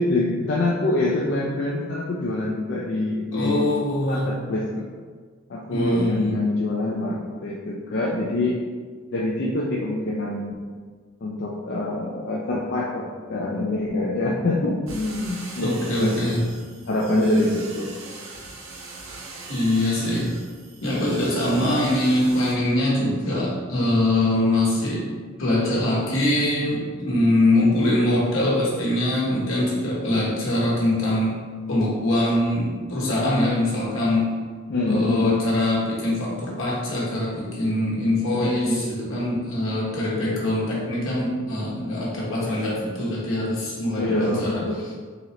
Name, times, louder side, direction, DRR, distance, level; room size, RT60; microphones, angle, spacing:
voice 1, 0.0-3.7 4.0-4.9 5.5-8.6 9.1-10.5 11.2-16.2 16.9-17.9 27.6-28.0 34.7-35.1 38.4-38.5 44.0-44.8, left 2 dB, 55° left, -4 dB, 0.4 m, -25 dB
voice 2, 3.3-4.3 5.7-6.4 15.6-16.4 19.5-20.3 20.8-25.1 25.4-34.4 34.8-44.6, left 1 dB, 75° left, -5 dB, 1.1 m, -23 dB
sound 1, 14.9-22.5, right 3 dB, 85° right, 0.6 m, -40 dB
3.9 x 3.1 x 2.9 m, 1.5 s
head